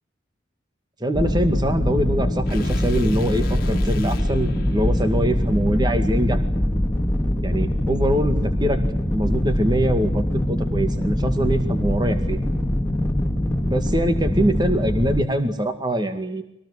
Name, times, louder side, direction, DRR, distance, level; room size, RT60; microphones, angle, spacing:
voice 1, 1.0-6.4 7.4-8.8 9.1-12.4 13.7-16.4, equal, 20° right, 8 dB, 2.2 m, -23 dB
sound 1, 1.1-15.2, left 1 dB, 10° left, 2.5 m, -23 dB
sound 2, 2.5-6.6, left 2 dB, 50° left, 2.4 m, -39 dB
25.0 x 19.0 x 9.9 m, 0.85 s
head